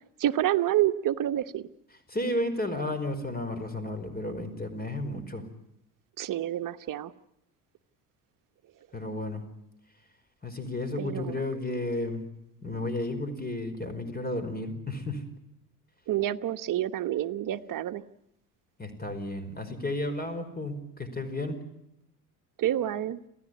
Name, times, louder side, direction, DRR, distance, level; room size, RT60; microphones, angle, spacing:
voice 1, 0.2-1.7 6.2-7.1 11.0-11.4 16.1-18.0 22.6-23.2, right 12 dB, 45° right, 9 dB, 1.2 m, -28 dB
voice 2, 2.1-5.4 8.9-9.4 10.4-12.2 12.6-15.2 18.8-21.6, left 1 dB, 20° left, 10 dB, 4.9 m, -32 dB
28.0 x 16.5 x 9.6 m, 0.82 s
hypercardioid pair, 60°, 46 cm